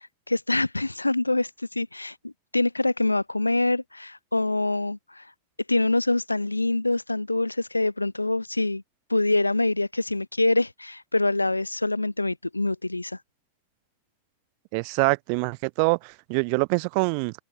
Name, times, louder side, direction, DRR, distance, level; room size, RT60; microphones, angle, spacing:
voice 1, 0.3-1.5 1.7-5.2 5.7-8.8 9.1-13.2, left 2 dB, 85° left, 1.4 m, -25 dB
voice 2, 14.7-17.3, right 40 dB or more, 45° right, 0.5 m, -25 dB
figure-of-eight pair, 90°, 0 cm